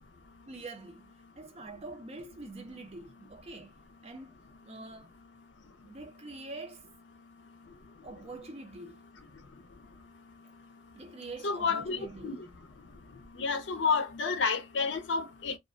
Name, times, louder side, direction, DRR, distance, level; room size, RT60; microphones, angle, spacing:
voice 1, 0.5-4.4 4.6-5.2 5.8-6.9 8.0-9.1 10.9-12.6, right 2 dB, 35° right, 0.5 m, -45 dB
voice 2, 11.4-12.4 13.4-15.6, left 5 dB, 75° left, 0.5 m, -30 dB
2.3 x 2.2 x 2.4 m
head